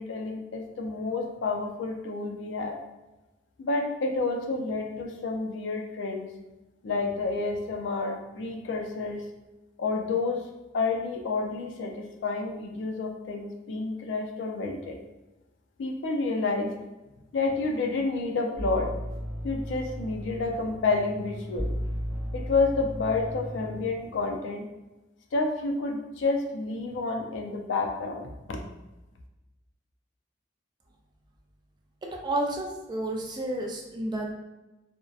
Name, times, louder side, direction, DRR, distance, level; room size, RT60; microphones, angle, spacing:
voice 1, 0.0-2.7 3.6-6.3 6.8-9.2 9.8-10.4 10.7-15.0 15.8-16.7 17.3-18.9 19.4-21.7 22.3-24.6 25.3-28.6, left 3 dB, 75° left, 2 dB, 0.4 m, -29 dB
sound 1, 18.5-23.8, equal, 25° left, 0.6 m, -35 dB
voice 2, 32.2-34.3, right 1 dB, 25° right, 1 dB, 0.3 m, -30 dB
2.6 x 2.1 x 2.3 m, 1.0 s
head